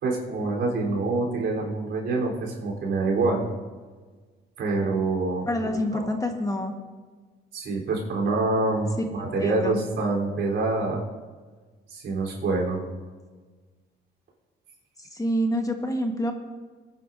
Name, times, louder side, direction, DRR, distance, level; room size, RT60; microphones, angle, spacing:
voice 1, 0.0-3.5 4.6-6.1 7.5-11.0 11.9-12.8, right 3 dB, 70° right, -2 dB, 3.6 m, -26 dB
voice 2, 5.5-6.7 9.4-9.8 15.1-16.3, equal, 15° left, 4 dB, 1.3 m, -27 dB
23.0 x 10.5 x 2.6 m, 1.4 s
cardioid pair, 90°, 20 cm